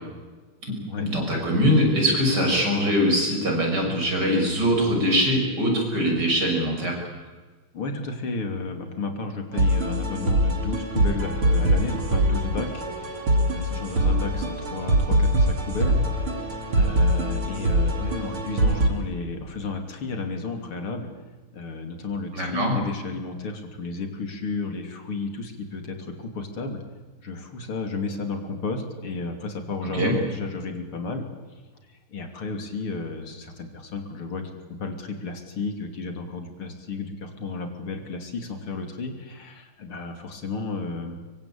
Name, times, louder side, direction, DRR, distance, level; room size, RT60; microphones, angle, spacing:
voice 1, 1.0-6.9 22.3-22.8 29.8-30.1, equal, 50° right, 1 dB, 7.2 m, -22 dB
voice 2, 7.7-21.1 21.5-26.8 27.2-31.2 31.9-34.5 34.8-41.2, left 3 dB, 85° left, 6 dB, 3.9 m, -33 dB
sound 1, 9.5-18.9, right 1 dB, 75° right, 3.9 m, -23 dB
24.0 x 24.0 x 8.7 m, 1.3 s
omnidirectional pair, 2.3 m